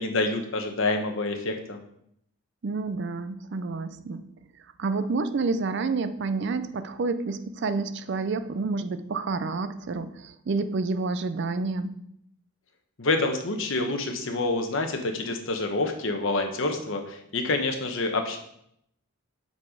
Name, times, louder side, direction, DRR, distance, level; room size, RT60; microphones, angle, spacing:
voice 1, 0.0-1.8 13.0-18.4, left 2 dB, 60° left, 5 dB, 0.9 m, -27 dB
voice 2, 2.6-4.2 4.8-12.0, right 3 dB, 55° right, 11 dB, 0.4 m, -29 dB
7.4 x 4.1 x 5.0 m, 0.73 s
head